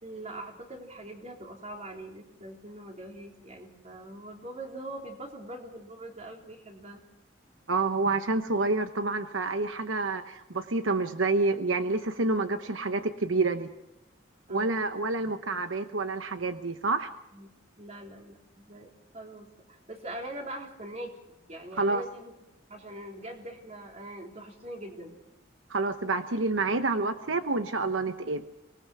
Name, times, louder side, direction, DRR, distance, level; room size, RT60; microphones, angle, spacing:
voice 1, 0.0-7.0 14.5-14.9 17.3-17.5 17.8-21.1 21.5-22.3 22.7-25.2, right 1 dB, 35° right, 2 dB, 3.6 m, -42 dB
voice 2, 7.7-13.7 14.5-17.1 21.8-22.0 25.7-28.4, right 3 dB, 80° right, 9 dB, 1.0 m, -28 dB
24.5 x 20.0 x 6.2 m, 0.90 s
head